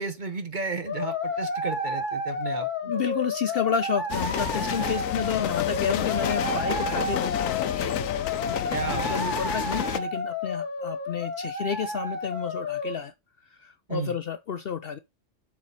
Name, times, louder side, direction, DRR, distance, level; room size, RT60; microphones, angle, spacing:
voice 1, 0.0-2.9 8.7-9.5 13.9-14.2, right 3 dB, 40° right, 1.1 m, -34 dB
sound 1, 0.9-13.0, left 2 dB, 35° left, 1.9 m, -31 dB
voice 2, 2.9-8.0 8.4-13.1 13.6-15.0, left 7 dB, 60° left, 0.7 m, -31 dB
sound 2, 4.1-10.0, left 10 dB, 85° left, 1.1 m, -30 dB
7.3 x 4.8 x 4.0 m
omnidirectional pair, 1.4 m